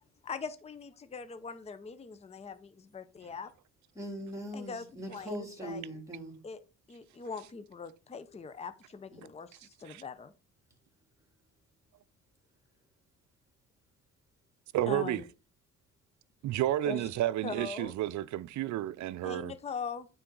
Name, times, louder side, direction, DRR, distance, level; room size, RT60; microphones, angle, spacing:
voice 1, 0.2-3.5 4.5-5.8 6.4-6.6 6.9-10.3 14.9-15.2 16.8-17.0 17.4-17.9 19.2-20.1, left 5 dB, 20° left, 0.6 m, -41 dB
voice 2, 3.9-6.4 9.1-9.3, equal, 10° right, 3.2 m, -40 dB
voice 3, 14.7-15.2 16.4-19.5, right 13 dB, 70° right, 0.5 m, -31 dB
8.9 x 3.9 x 3.8 m
cardioid pair, 90°, 30 cm